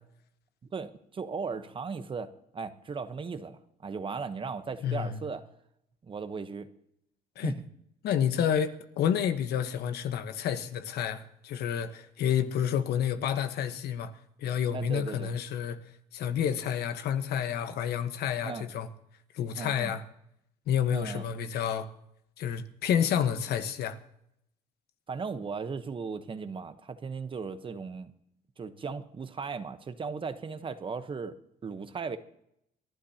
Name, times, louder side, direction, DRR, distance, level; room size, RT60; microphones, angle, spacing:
voice 1, 0.7-5.4 6.0-6.7 7.4-7.6 14.7-15.3 18.4-18.7 19.6-19.9 20.9-21.2 25.1-28.1 28.6-31.3 31.6-32.2, right 5 dB, 30° right, 1.0 m, -37 dB
voice 2, 4.8-5.2 7.4-7.5 8.0-14.1 14.4-15.8 16.1-18.9 19.3-20.0 20.7-21.9 22.4-24.0, left 9 dB, 70° left, 1.2 m, -29 dB
28.5 x 11.5 x 2.9 m
cardioid pair, 110°, 17 cm